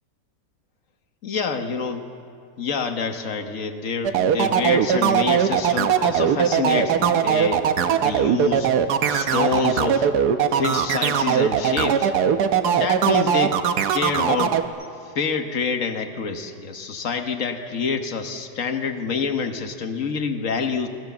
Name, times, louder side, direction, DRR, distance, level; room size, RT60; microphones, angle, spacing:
voice 1, 1.2-2.0 2.6-8.7 9.1-10.1 10.5-12.1 12.7-13.6 13.9-14.6 15.1-20.9, left 5 dB, 50° left, 7 dB, 1.5 m, -27 dB
sound 1, 4.0-14.7, right 8 dB, 70° right, 1.4 m, -20 dB
25.5 x 15.5 x 7.1 m, 2.4 s
omnidirectional pair, 1.9 m